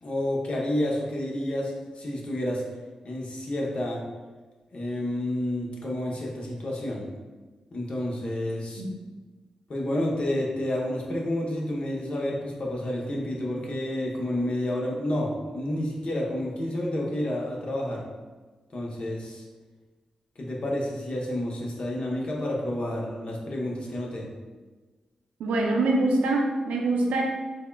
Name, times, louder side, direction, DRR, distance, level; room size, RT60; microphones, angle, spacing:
voice 1, 0.0-2.6 3.0-4.0 4.7-7.1 7.7-8.8 9.7-18.0 18.7-19.4 20.4-24.3, left 1 dB, 55° left, -2 dB, 0.7 m, -30 dB
voice 2, 25.4-27.2, right 2 dB, 85° right, 0 dB, 0.4 m, -24 dB
3.5 x 2.1 x 2.2 m, 1.3 s
supercardioid pair, 45°, 2 cm